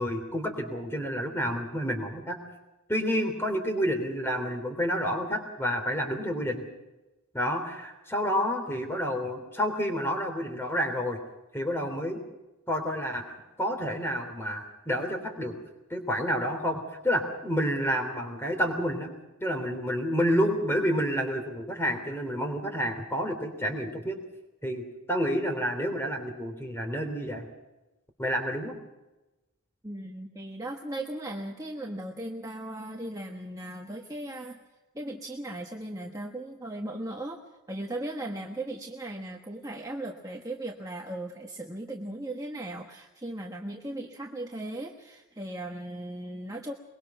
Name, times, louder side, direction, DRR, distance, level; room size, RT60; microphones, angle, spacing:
voice 1, 0.0-2.4 2.9-6.7 7.3-11.2 11.5-12.2 12.7-15.5 15.9-19.1 19.4-24.2 24.6-27.5 28.2-28.7, equal, 10° left, 5 dB, 3.2 m, -29 dB
voice 2, 29.8-34.6 34.9-37.4 37.7-46.7, right 1 dB, 15° right, 1 dB, 1.3 m, -37 dB
23.0 x 22.0 x 5.9 m, 1.0 s
head